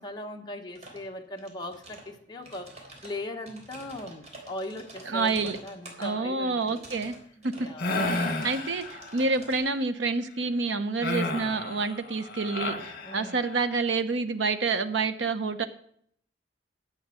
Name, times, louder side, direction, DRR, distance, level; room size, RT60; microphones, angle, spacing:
voice 1, 0.0-2.7 3.0-6.8 7.6-8.2 13.0-13.4, left 1 dB, 25° left, 1 dB, 1.3 m, -39 dB
sound 1, 0.8-1.1 1.4-2.1 2.4-6.1 6.6-7.2 7.4-7.7 8.1-9.6, right 2 dB, 40° right, 3.7 m, -48 dB
voice 2, 5.1-5.6 6.0-7.1 7.4-7.5 8.0-15.6, right 4 dB, 90° right, 9 dB, 0.9 m, -28 dB
sound 2, 7.8-9.3 11.0-13.7, left 2 dB, 55° left, 1.8 m, -32 dB
11.0 x 8.0 x 7.8 m, 0.65 s
head